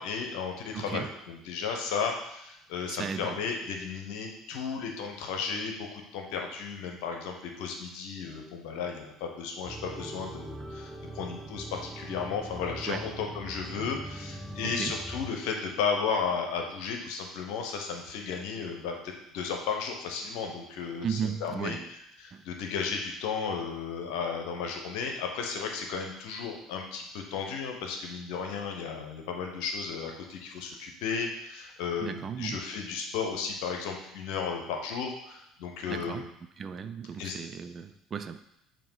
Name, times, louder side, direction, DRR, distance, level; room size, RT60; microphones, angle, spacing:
voice 1, 0.0-18.9 19.3-21.8 22.2-36.2 37.2-37.4, left 5 dB, 65° left, 3 dB, 1.0 m, -34 dB
voice 2, 0.7-1.1 2.9-3.4 12.9-13.0 14.6-15.0 21.0-21.9 22.3-22.4 32.0-32.6 35.9-36.3 36.6-38.4, right 7 dB, 40° right, 10 dB, 0.4 m, -35 dB
sound 1, 9.6-15.3, right 1 dB, ahead, 0.9 m, -41 dB
6.9 x 3.0 x 5.6 m, 0.81 s
figure-of-eight pair, 60°, 0 cm